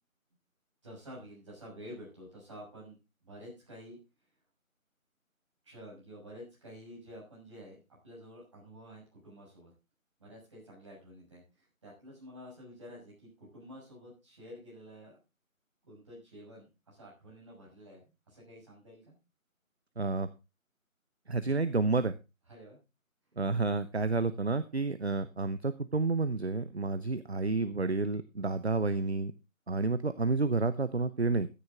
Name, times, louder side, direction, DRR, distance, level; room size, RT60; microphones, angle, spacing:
voice 1, 0.8-3.0 3.2-4.0 5.6-7.8 8.0-9.7 10.2-15.2 15.8-19.1 22.5-22.8, equal, 20° right, -5 dB, 6.3 m, -50 dB
voice 2, 20.0-20.3 21.3-22.1 23.4-29.3 29.7-31.5, right 3 dB, 50° right, 13 dB, 0.7 m, -30 dB
14.0 x 10.0 x 3.7 m, 0.27 s
figure-of-eight pair, 175°, 42 cm